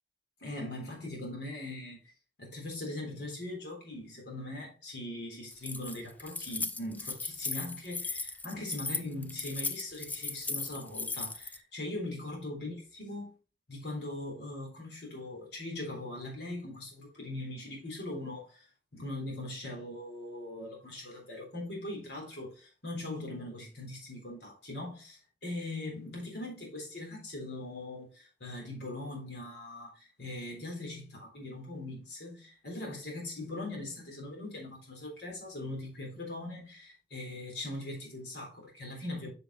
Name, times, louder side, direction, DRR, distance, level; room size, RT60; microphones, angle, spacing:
voice 1, 0.4-2.1 2.4-13.4 13.7-39.3, left 1 dB, 75° left, 3.7 m, -41 dB
Keys jangling, 5.5-11.6, left 3 dB, 10° left, 0.3 m, -37 dB
7.4 x 6.7 x 3.1 m
head